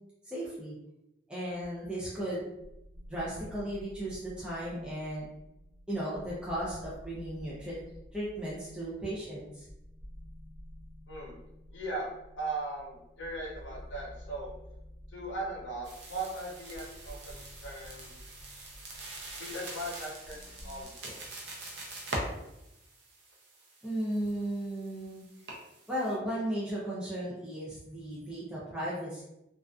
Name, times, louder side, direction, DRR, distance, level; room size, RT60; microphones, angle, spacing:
voice 1, 0.2-0.8 1.3-2.4 3.1-5.2 5.9-7.8 8.1-9.7 23.8-25.2 25.9-29.2, right 1 dB, 5° right, -8 dB, 0.4 m, -35 dB
sound 1, 1.4-20.8, equal, 40° right, 1.3 m, -51 dB
voice 2, 11.7-12.1 12.4-14.5 15.1-18.1 19.4-21.1, right 2 dB, 85° left, -3 dB, 0.6 m, -38 dB
sound 2, 15.8-26.1, right 1 dB, 75° right, 0.5 m, -44 dB
2.4 x 2.4 x 2.2 m, 0.90 s
head